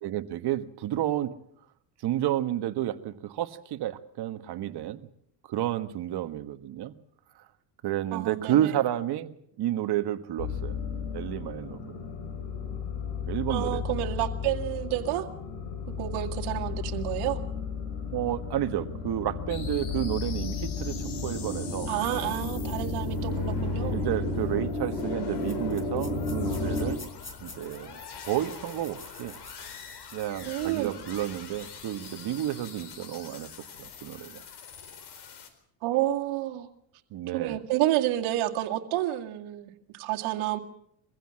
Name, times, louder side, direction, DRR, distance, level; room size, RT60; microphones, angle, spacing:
voice 1, 0.0-1.3 2.0-5.1 5.5-6.9 7.8-10.8 11.1-12.0 13.3-13.8 18.1-21.9 23.9-27.0 27.4-28.0 28.2-29.3 30.1-33.5 33.8-34.4 37.1-37.6, right 12 dB, 50° right, 9 dB, 1.6 m, -31 dB
voice 2, 8.1-8.7 13.5-15.3 16.0-17.4 21.9-24.0 30.5-30.9 35.8-36.7 37.3-40.6, right 14 dB, 75° right, 3 dB, 2.2 m, -29 dB
sound 1, 10.4-26.9, left 4 dB, 80° left, 4.4 m, -33 dB
sound 2, 19.5-35.5, left 6 dB, 50° left, 4.2 m, -44 dB
sound 3, 25.0-31.7, left 4 dB, 25° left, 4.7 m, -50 dB
23.5 x 16.0 x 7.6 m, 0.72 s
cardioid pair, 120°, 49 cm